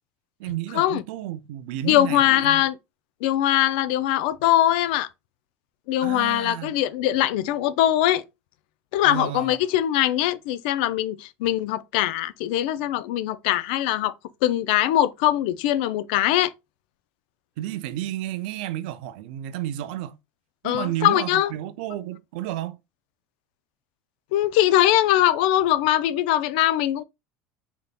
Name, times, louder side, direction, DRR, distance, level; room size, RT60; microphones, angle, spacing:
voice 1, 0.4-2.6 6.0-6.8 9.0-9.5 17.6-20.2 20.6-22.8, right 13 dB, 80° right, 0.5 m, -32 dB
voice 2, 1.8-2.8 3.2-5.1 5.9-8.2 8.9-14.1 14.4-16.5 20.6-21.5 24.3-27.0, left 13 dB, 75° left, 0.4 m, -21 dB
3.9 x 3.5 x 2.2 m
cardioid pair, 175°, 5 cm